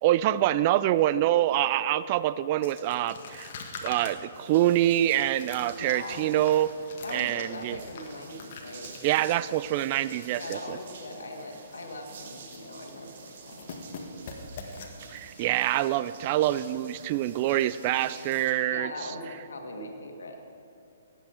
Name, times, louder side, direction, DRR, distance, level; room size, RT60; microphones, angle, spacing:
voice 1, 0.0-3.5 3.8-6.7 7.1-7.8 9.0-10.8 15.1-18.9, right 13 dB, 40° right, 16 dB, 0.4 m, -25 dB
sound 1, 2.6-10.9 11.2-11.3 11.6-12.0 12.2-13.0 13.3-15.6, left 4 dB, 50° left, 1.7 m, -45 dB
sound 2, 4.3-18.5, right 5 dB, 60° right, 1.7 m, -48 dB
voice 2, 5.8-6.3 7.0-8.9 10.4-13.7 14.0-14.3 18.7-20.4, left 2 dB, 80° left, 3 dB, 1.9 m, -40 dB
17.5 x 8.2 x 5.0 m, 2.7 s
hypercardioid pair, 135°, 0 cm